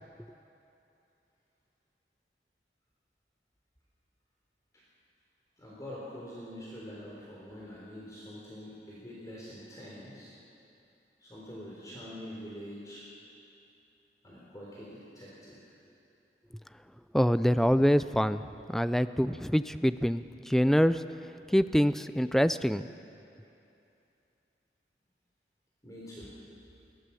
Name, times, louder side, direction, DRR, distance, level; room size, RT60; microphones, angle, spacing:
voice 1, 5.6-10.3 11.2-13.0 14.2-15.6 25.8-26.3, equal, 20° left, -6 dB, 3.7 m, -45 dB
voice 2, 17.1-18.4 18.7-21.0 21.5-22.9, equal, ahead, 13 dB, 0.4 m, -25 dB
21.5 x 17.0 x 7.0 m, 2.7 s
head